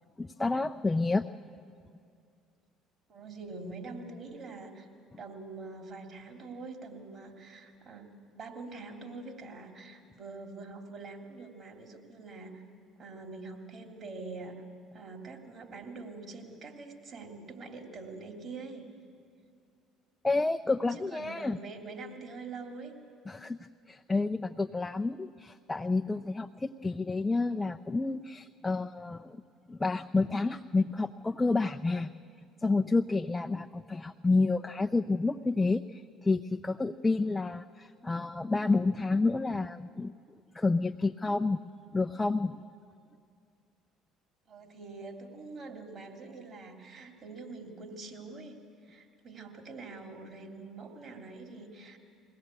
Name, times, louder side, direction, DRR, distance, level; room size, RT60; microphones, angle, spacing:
voice 1, 0.2-1.3 20.2-21.6 23.3-23.6 23.9-29.4 29.7-32.1 32.6-41.6 41.9-42.6, left 3 dB, 15° left, 7 dB, 0.5 m, -29 dB
voice 2, 3.1-4.9 5.2-12.6 13.0-14.6 14.9-18.9 20.9-22.9 44.5-52.0, right 3 dB, 45° right, 3 dB, 3.0 m, -45 dB
21.5 x 17.0 x 8.3 m, 2.3 s
hypercardioid pair, 65°, 0 cm